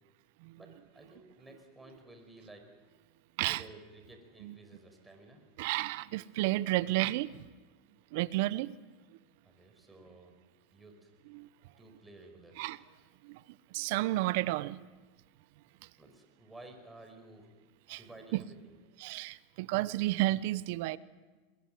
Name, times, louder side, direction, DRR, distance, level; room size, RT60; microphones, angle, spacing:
voice 1, 0.6-2.7 3.5-5.4 9.4-10.3 10.7-11.1 11.7-12.7 16.0-17.5 17.9-18.7, right 2 dB, 10° right, 4 dB, 5.3 m, -54 dB
voice 2, 5.6-7.5 8.1-8.7 9.1-9.2 11.3-11.5 12.6-12.8 13.2-14.9 17.9-18.0 18.3-18.4 19.0-21.0, right 17 dB, 65° right, 18 dB, 0.8 m, -32 dB
22.5 x 22.0 x 7.8 m, 1.3 s
hypercardioid pair, 115°, 0 cm